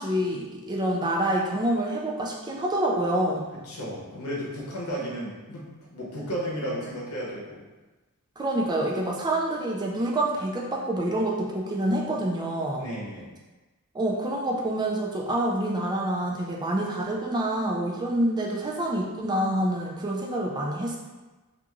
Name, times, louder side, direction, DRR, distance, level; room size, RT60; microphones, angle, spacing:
voice 1, 0.0-3.5 8.4-12.9 13.9-21.0, right 1 dB, 20° right, -1 dB, 0.4 m, -27 dB
voice 2, 3.5-7.6 12.8-13.3, equal, 75° left, -5 dB, 0.8 m, -34 dB
3.0 x 2.5 x 2.4 m, 1.2 s
head